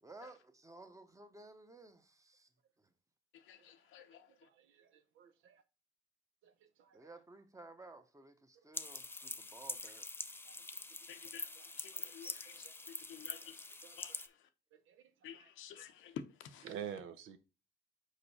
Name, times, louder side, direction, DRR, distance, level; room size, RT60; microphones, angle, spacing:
voice 1, 0.0-2.5 2.8-2.9 6.9-10.1, right 2 dB, 15° right, 0.9 m, -55 dB
voice 2, 3.3-4.5 11.1-14.5 15.2-16.8, left 9 dB, 85° left, 0.7 m, -52 dB
voice 3, 4.4-5.6 6.4-6.5 6.8-7.1 10.5-10.6 11.9-12.7 13.3-13.4 13.8-13.9 14.7-15.0 16.7-17.4, right 9 dB, 85° right, 0.7 m, -49 dB
sound 1, 8.7-14.3, left 3 dB, 10° left, 0.4 m, -45 dB
5.0 x 4.6 x 4.2 m
cardioid pair, 90°, 20 cm